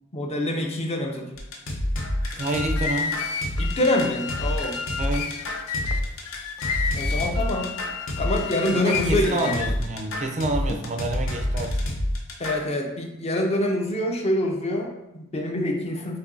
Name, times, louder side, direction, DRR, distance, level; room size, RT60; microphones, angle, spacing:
voice 1, 0.1-1.4 3.6-4.8 6.9-7.7 8.2-9.7 12.4-16.2, left 1 dB, 30° left, 2 dB, 0.5 m, -26 dB
sound 1, 1.3-12.7, left 1 dB, 60° left, 0.7 m, -28 dB
sound 2, 2.2-9.9, left 5 dB, 85° left, 0.4 m, -32 dB
voice 2, 2.4-3.1 5.0-5.3 8.8-11.7, right 2 dB, 30° right, 3 dB, 0.4 m, -28 dB
6.6 x 2.7 x 2.6 m, 0.90 s
head